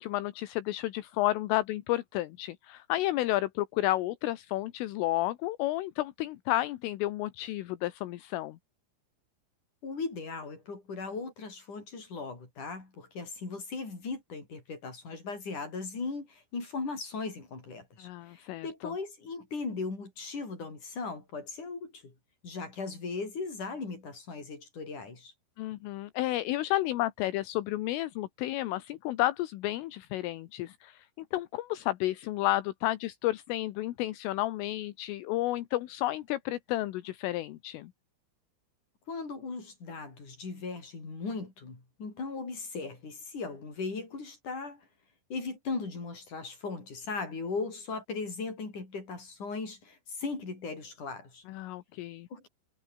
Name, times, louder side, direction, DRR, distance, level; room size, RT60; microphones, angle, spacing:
voice 1, 0.0-8.6 18.0-18.9 25.6-37.9 51.5-52.3, left 16 dB, 80° left, 3.7 m, -31 dB
voice 2, 9.8-22.1 22.4-25.3 39.1-44.9 45.3-51.4 52.3-52.5, left 4 dB, 35° left, 8.6 m, -38 dB
omnidirectional pair, 5.9 m